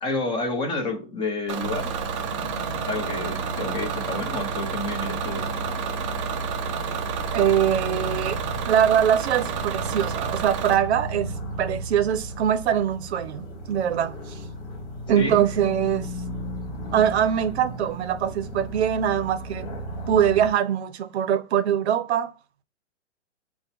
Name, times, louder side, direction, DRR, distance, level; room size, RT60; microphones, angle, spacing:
voice 1, 0.0-1.9 2.2-2.3 2.8-5.5 15.2-15.4, left 2 dB, 15° left, 0.8 m, -29 dB
Bus / Engine, 1.5-10.8, right 8 dB, 30° right, 0.4 m, -31 dB
sound 1, 1.6-20.5, right 1 dB, 30° left, 1.7 m, -34 dB
voice 2, 7.3-11.3 11.6-14.4 15.1-16.1 16.9-19.7 20.1-22.3, right 9 dB, 60° right, 0.7 m, -23 dB
5.4 x 2.3 x 4.1 m
hypercardioid pair, 140°, 36 cm